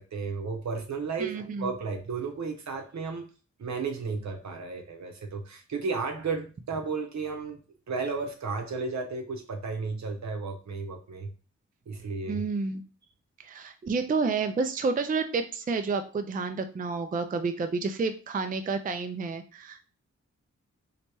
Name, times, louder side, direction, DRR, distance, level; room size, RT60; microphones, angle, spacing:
voice 1, 0.0-3.2 3.6-7.6 7.9-11.3 11.9-12.4, right 4 dB, 70° right, 4 dB, 0.8 m, -33 dB
voice 2, 1.2-1.7 12.3-12.8 13.4-19.9, right 4 dB, 30° right, 8 dB, 0.4 m, -30 dB
3.3 x 2.8 x 2.9 m, 0.36 s
cardioid pair, 70°, 29 cm